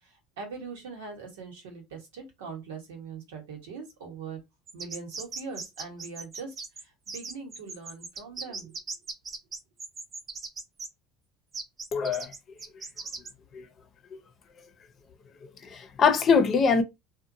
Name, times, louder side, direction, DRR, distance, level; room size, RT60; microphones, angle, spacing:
voice 1, 0.0-4.4 4.7-8.8, right 5 dB, 90° right, 1.1 m, -42 dB
sound 1, 4.7-10.9 11.5-13.3, right 4 dB, 40° right, 0.7 m, -38 dB
voice 2, 11.9-12.3 13.5-13.6 15.7-16.8, left 5 dB, 45° left, 0.7 m, -22 dB
2.8 x 2.2 x 2.6 m
supercardioid pair, 90°, 0 cm